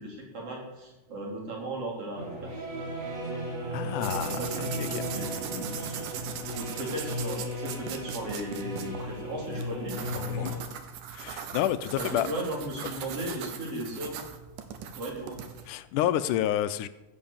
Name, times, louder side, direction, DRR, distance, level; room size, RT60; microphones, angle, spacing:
voice 1, 0.0-2.5 3.8-6.1 6.6-10.5 12.0-14.2 15.0-15.4, right 1 dB, 50° right, -2 dB, 4.4 m, -37 dB
sound 1, 2.2-10.6, equal, 25° right, 2.8 m, -35 dB
voice 2, 3.7-5.0 10.3-10.5 11.1-12.3 15.7-16.9, left 12 dB, 85° left, 14 dB, 2.2 m, -29 dB
sound 2, 4.0-15.7, right 8 dB, 85° right, 2.7 m, -40 dB
15.5 x 7.8 x 7.2 m, 1.0 s
omnidirectional pair, 3.6 m